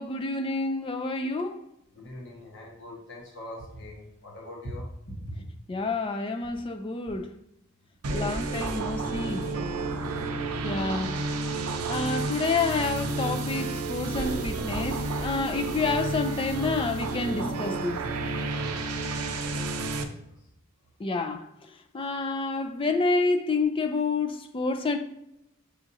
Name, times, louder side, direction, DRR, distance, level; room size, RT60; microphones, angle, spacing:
voice 1, 0.0-1.6 5.7-7.3 8.1-9.5 10.6-11.2 11.9-18.0 21.0-21.4 21.9-25.0, left 3 dB, 25° left, 0.3 m, -28 dB
voice 2, 1.9-5.4 9.9-10.3 18.4-20.5, left 1 dB, 55° left, 1.1 m, -43 dB
sound 1, 8.0-20.0, right 3 dB, 90° right, 0.5 m, -31 dB
6.9 x 2.5 x 2.7 m
head